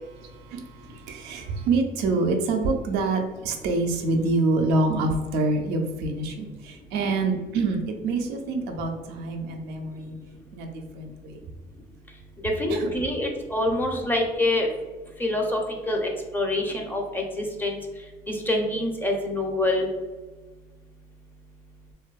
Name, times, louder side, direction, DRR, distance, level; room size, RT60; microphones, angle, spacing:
voice 1, 0.1-10.1 10.5-11.4 12.7-13.0 13.9-14.1, right 3 dB, 90° right, 4 dB, 0.4 m, -26 dB
voice 2, 12.6-14.7 15.2-15.6 15.9-17.8 18.3-19.9, left 1 dB, 10° left, 1 dB, 0.4 m, -26 dB
2.6 x 2.2 x 2.3 m, 1.2 s
cardioid pair, 110°, 17 cm